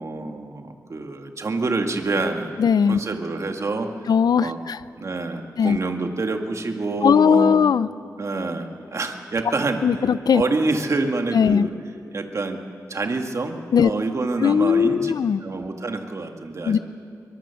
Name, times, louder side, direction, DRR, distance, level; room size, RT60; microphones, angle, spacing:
voice 1, 0.0-2.6 2.9-3.9 4.4-4.6 5.0-7.6 8.2-9.8 10.3-11.7 12.1-12.6 12.9-15.1 15.4-16.8, right 3 dB, 50° right, 4 dB, 1.9 m, -27 dB
voice 2, 2.6-3.0 4.1-4.8 5.6-5.8 7.0-7.9 9.8-10.4 11.3-11.7 13.7-13.9 14.4-15.4 16.7-16.8, left 7 dB, 80° left, 16 dB, 0.6 m, -18 dB
23.0 x 23.0 x 7.1 m, 2.3 s
wide cardioid pair, 105°, 7 cm